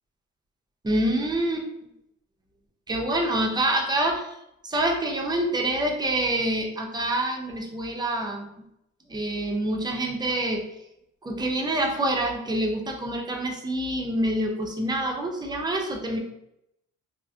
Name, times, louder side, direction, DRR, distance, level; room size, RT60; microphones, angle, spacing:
voice 1, 0.8-1.7 2.9-4.3 4.6-8.5 9.1-10.7 11.2-16.2, right 1 dB, 15° right, 1 dB, 0.5 m, -26 dB
2.3 x 2.0 x 2.5 m, 0.80 s
cardioid pair, 90°, 30 cm